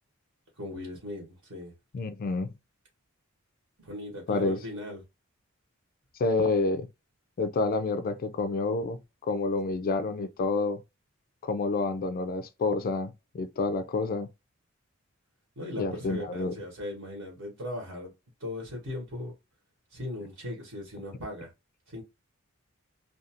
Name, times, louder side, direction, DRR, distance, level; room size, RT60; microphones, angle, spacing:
voice 1, 0.6-1.7 3.8-5.0 15.6-18.1 18.4-19.3 19.9-21.5 21.9-22.0, left 1 dB, 70° right, 1.0 m, -38 dB
voice 2, 1.9-2.5 4.3-4.6 6.2-6.9 7.4-10.8 11.4-14.3 15.8-16.5, left 3 dB, 45° left, 0.3 m, -28 dB
2.4 x 2.3 x 2.7 m
head